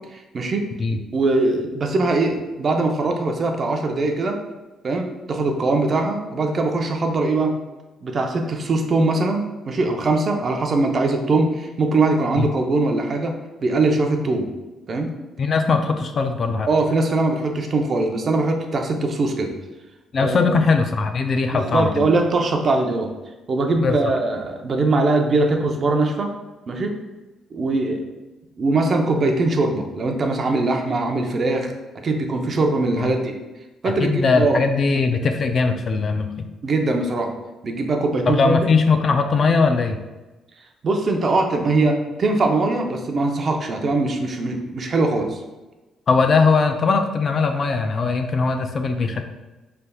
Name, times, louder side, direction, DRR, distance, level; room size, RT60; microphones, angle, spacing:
voice 1, 0.1-0.6 1.1-4.4 4.8-7.5 8.0-13.3 13.6-14.5 14.9-15.1 16.7-19.5 20.2-20.5 21.5-23.1 23.5-26.3 26.7-26.9 27.5-28.0 28.6-31.7 32.0-33.3 33.8-34.6 36.6-37.3 37.6-38.7 40.8-45.4, right 2 dB, 40° right, 3 dB, 0.6 m, -21 dB
voice 2, 15.4-16.7 20.1-22.1 23.8-24.1 33.0-33.1 33.8-36.5 38.3-40.0 46.1-49.2, left 4 dB, 40° left, 6 dB, 0.3 m, -20 dB
5.5 x 3.3 x 2.3 m, 1.1 s
cardioid pair, 130°, 0 cm